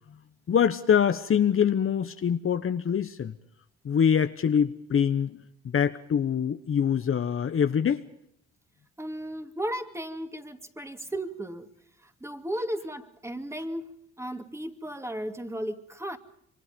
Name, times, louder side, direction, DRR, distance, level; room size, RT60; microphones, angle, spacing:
voice 1, 0.5-3.4 3.8-5.4 5.6-8.0, left 8 dB, 45° left, 1.1 m, -24 dB
voice 2, 9.0-16.2, right 1 dB, 10° right, 2.5 m, -35 dB
27.0 x 24.0 x 5.3 m
cardioid pair, 90°, 30 cm